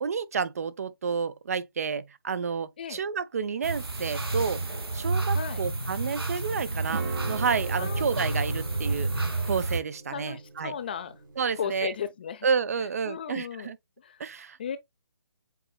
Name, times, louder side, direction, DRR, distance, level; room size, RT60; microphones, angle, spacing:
voice 1, 0.0-4.6 4.9-9.1 9.4-10.7 11.4-11.9 12.4-13.8 14.2-14.6, right 6 dB, 40° right, 0.5 m, -30 dB
sound 1, 3.6-9.8, right 3 dB, 80° right, 1.8 m, -30 dB
sound 2, 6.9-12.1, right 4 dB, 55° right, 1.4 m, -42 dB
voice 2, 10.1-11.2 11.5-12.5 13.0-14.2 14.6-14.8, left 7 dB, 25° left, 0.3 m, -35 dB
7.8 x 2.9 x 2.3 m
figure-of-eight pair, 145°, 13 cm